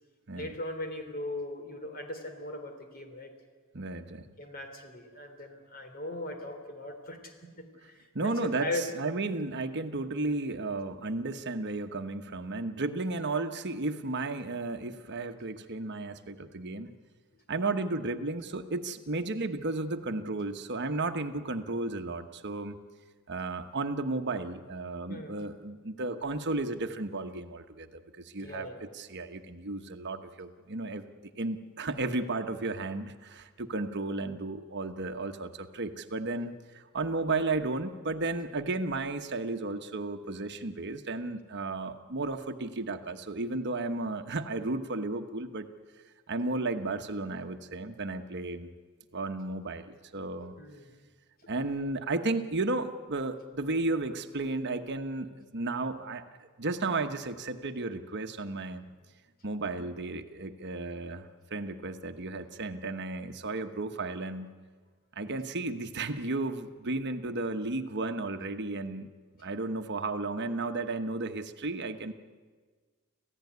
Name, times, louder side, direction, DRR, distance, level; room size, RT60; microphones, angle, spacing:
voice 1, 0.3-3.3 4.4-8.9 25.1-25.4 28.4-28.9 50.6-50.9, left 1 dB, 45° left, 6 dB, 3.4 m, -39 dB
voice 2, 3.7-4.3 8.1-16.9 17.5-22.8 23.3-27.9 28.2-31.1 31.4-45.7 46.3-48.7 49.1-50.5 51.5-58.9 59.4-64.5 65.2-69.1 69.4-72.1, right 2 dB, 55° right, 7 dB, 1.2 m, -33 dB
27.0 x 15.5 x 9.5 m, 1.5 s
head